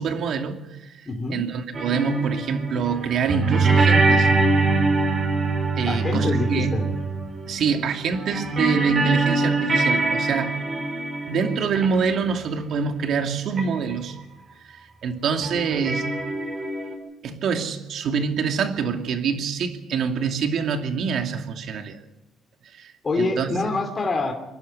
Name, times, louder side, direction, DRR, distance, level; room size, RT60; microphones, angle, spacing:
voice 1, 0.0-1.0 1.3-4.3 5.8-6.7 7.5-10.6 11.3-14.2 14.6-16.0 17.2-22.0 22.7-23.6, right 6 dB, 65° right, 5 dB, 2.6 m, -25 dB
voice 2, 1.0-1.4 5.9-6.8 23.0-24.3, left 3 dB, 30° left, 4 dB, 2.8 m, -25 dB
sound 1, 1.7-7.8 8.1-12.2 13.6-13.7 13.9-14.0 15.4-16.9, right 3 dB, 35° right, 4.7 m, -23 dB
27.0 x 11.5 x 9.1 m, 0.97 s
cardioid pair, 105°, 0 cm